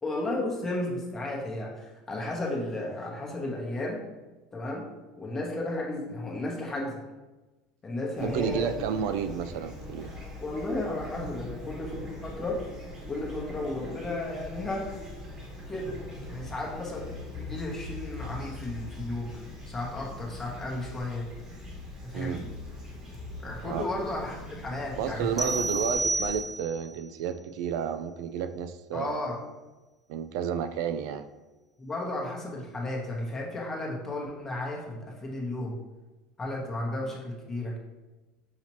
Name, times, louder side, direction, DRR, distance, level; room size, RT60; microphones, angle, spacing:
voice 1, 0.0-4.0 4.5-4.9 5.2-7.0 7.8-8.9 10.4-11.9 12.2-12.6 13.1-14.9 15.7-16.0 16.3-19.3 19.7-21.3 22.0-22.5 23.4-25.5 28.9-29.4 31.8-35.8 36.4-37.8, left 2 dB, 20° left, -2 dB, 0.9 m, -33 dB
Fowl / Chirp tweet, 8.2-26.4, left 1 dB, 30° right, 1.1 m, -43 dB
voice 2, 8.2-10.1 22.1-22.4 23.6-23.8 25.0-29.2 30.1-31.2 36.6-36.7, right 8 dB, 75° right, 10 dB, 0.3 m, -31 dB
sound 1, 14.8-19.8 21.6-24.6, left 6 dB, 50° left, 0.5 m, -46 dB
sound 2, 25.4-26.9, right 2 dB, 5° right, 0.4 m, -30 dB
5.7 x 2.8 x 2.9 m, 1.1 s
supercardioid pair, 125°, 2 cm